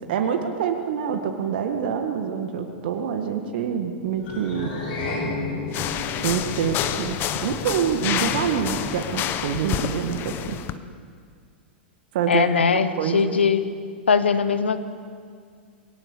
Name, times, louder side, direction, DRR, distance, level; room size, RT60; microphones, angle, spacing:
voice 1, 0.1-4.7 6.2-10.6 12.1-13.2, right 7 dB, 60° right, 5 dB, 1.8 m, -26 dB
sound 1, 4.2-8.8, left 2 dB, 60° left, 7.7 m, -33 dB
sound 2, 5.7-10.7, left 11 dB, 40° left, 1.0 m, -28 dB
voice 2, 12.3-13.7 14.1-14.8, left 6 dB, 80° left, 12 dB, 1.2 m, -20 dB
22.0 x 17.5 x 6.9 m, 2.1 s
figure-of-eight pair, 100°, 6 cm